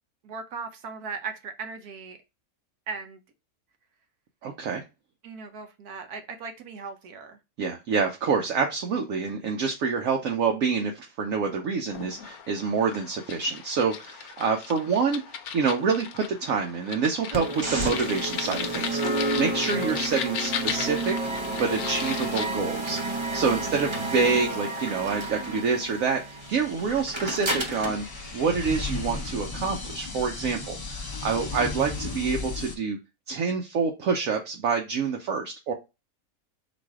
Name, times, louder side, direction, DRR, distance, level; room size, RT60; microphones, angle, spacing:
voice 1, 0.2-2.2 2.9-3.2 5.2-7.4 23.5-23.8, right 5 dB, 90° right, 1.3 m, -38 dB
voice 2, 4.4-4.8 7.6-21.2 21.5-28.1 28.3-33.0 33.3-35.7, right 5 dB, 70° right, 1.0 m, -27 dB
sound 1, 11.9-22.5, left 8 dB, 80° left, 1.1 m, -36 dB
sound 2, 17.3-29.3, right 2 dB, 40° right, 0.4 m, -31 dB
sound 3, 26.4-32.8, left 3 dB, 40° left, 0.3 m, -35 dB
4.0 x 2.5 x 4.7 m
omnidirectional pair, 1.6 m